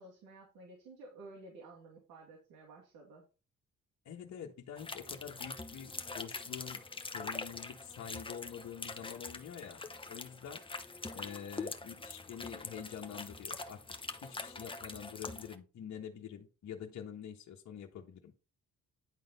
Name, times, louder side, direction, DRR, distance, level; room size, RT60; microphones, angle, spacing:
voice 1, 0.0-3.2, right 2 dB, 90° right, 2.3 m, -53 dB
voice 2, 4.0-9.8 10.1-10.6 11.1-13.8 14.2-18.4, left 8 dB, 65° left, 1.4 m, -46 dB
sound 1, 4.8-15.6, left 3 dB, 15° left, 0.9 m, -44 dB
10.5 x 4.0 x 5.4 m
cardioid pair, 90°, 30 cm